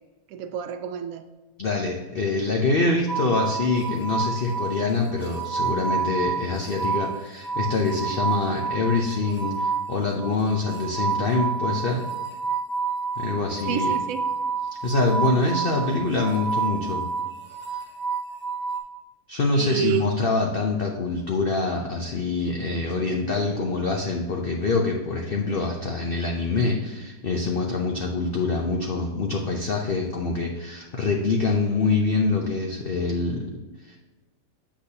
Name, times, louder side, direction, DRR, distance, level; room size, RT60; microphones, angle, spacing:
voice 1, 0.3-1.3 13.7-14.3 19.5-20.1, right 9 dB, 70° right, 9 dB, 0.8 m, -29 dB
voice 2, 1.6-12.0 13.2-13.9 14.8-17.0 19.3-33.6 33.9-34.0, left 3 dB, 65° left, 0 dB, 0.5 m, -25 dB
sound 1, 3.1-18.8, right 5 dB, 40° left, 1.2 m, -29 dB
8.1 x 6.1 x 2.8 m, 1.2 s
omnidirectional pair, 1.9 m